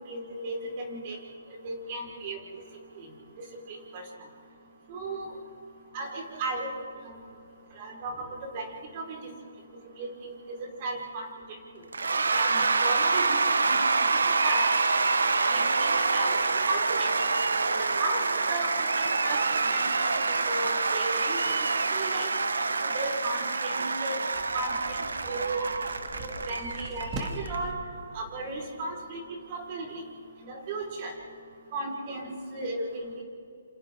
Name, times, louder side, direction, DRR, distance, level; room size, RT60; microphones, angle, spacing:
voice 1, 0.1-1.2 1.6-2.4 3.0-3.1 3.7-4.0 4.9-5.3 5.9-6.7 7.8-8.7 8.9-9.2 10.0-10.1 10.8-11.3 12.3-14.0 14.4-14.6 15.5-16.3 16.7-17.1 17.7-18.2 18.5-19.4 19.7-20.2 20.5-21.4 21.9-22.3 22.9-24.2 24.5-25.7 26.1-27.7 28.1-29.2 29.5-30.0 30.5-31.1 31.7-33.2, right 2 dB, 35° right, 0 dB, 5.0 m, -35 dB
Cheering / Applause / Crowd, 11.9-27.6, right 4 dB, 80° right, 1.4 m, -26 dB
sound 1, 24.3-27.7, right 2 dB, 20° right, 2.7 m, -41 dB
28.5 x 27.5 x 3.9 m, 2.5 s
hypercardioid pair, 145°, 0 cm